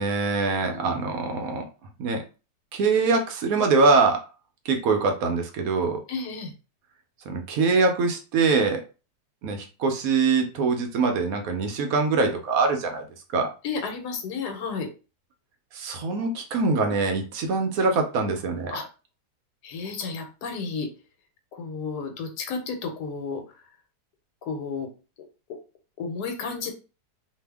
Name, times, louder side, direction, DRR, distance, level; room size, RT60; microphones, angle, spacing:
voice 1, 0.0-1.7 2.0-2.2 2.7-4.3 4.7-6.0 7.3-8.8 9.4-13.1 13.3-13.5 15.7-18.8, right 4 dB, 70° right, 4 dB, 1.0 m, -23 dB
voice 2, 0.6-1.0 6.1-6.5 13.6-14.9 18.7-18.9 19.6-20.9 21.5-23.4 24.4-24.9 26.0-26.7, left 5 dB, 80° left, 5 dB, 1.2 m, -32 dB
2.7 x 2.4 x 3.3 m, 0.33 s
omnidirectional pair, 1.7 m